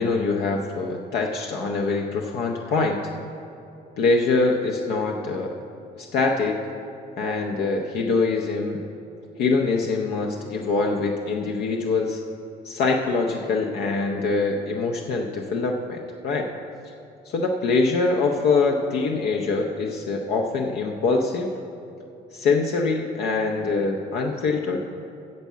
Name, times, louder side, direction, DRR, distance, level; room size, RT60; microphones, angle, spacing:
voice 1, 0.0-3.1 4.0-5.6 5.9-6.6 7.2-8.8 9.4-12.2 12.6-16.5 16.8-16.9 17.2-21.5 22.3-24.8, left 3 dB, 70° left, 2 dB, 0.8 m, -24 dB
9.5 x 7.2 x 7.3 m, 2.7 s
cardioid pair, 110°, 17 cm